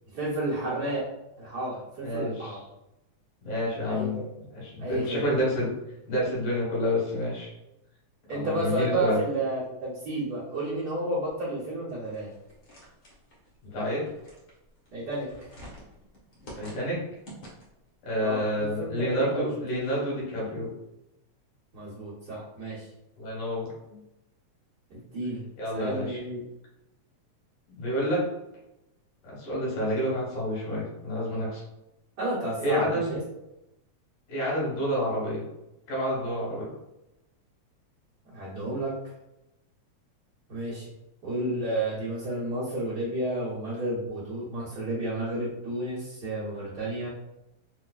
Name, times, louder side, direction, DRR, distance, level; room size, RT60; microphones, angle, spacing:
voice 1, 0.1-1.0 1.4-2.6 3.9-4.1 4.8-5.2 8.3-12.3 14.9-15.3 18.2-19.5 21.7-22.9 24.9-25.4 25.7-26.4 32.2-33.2 38.3-38.9 40.5-40.9 41.2-47.1, right 1 dB, 70° right, -10 dB, 0.9 m, -31 dB
voice 2, 2.0-2.6 3.4-4.2 4.5-5.7 6.1-7.5 8.3-9.2 13.7-14.0 16.6-17.0 18.0-20.7 23.2-24.0 25.6-26.2 27.7-28.2 29.2-31.6 32.6-33.1 34.3-35.4 35.9-36.7, equal, 90° left, -5 dB, 2.9 m, -29 dB
sound 1, 12.0-17.9, equal, 65° left, 0.9 m, -48 dB
5.5 x 2.1 x 2.3 m, 0.92 s
omnidirectional pair, 3.4 m